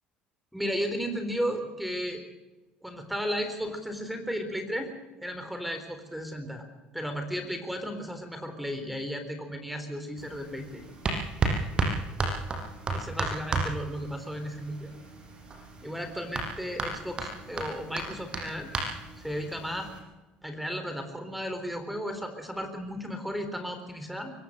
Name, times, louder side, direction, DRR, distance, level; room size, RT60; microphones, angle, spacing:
voice 1, 0.5-2.2 2.8-4.9 5.2-6.7 6.9-10.8 12.9-14.9 15.8-18.7 19.2-19.9 20.4-24.3, equal, ahead, 7 dB, 3.9 m, -34 dB
sound 1, 10.2-20.0, right 3 dB, 30° right, 6.1 m, -33 dB
24.0 x 16.5 x 6.6 m, 1.1 s
cardioid pair, 115°, 3 cm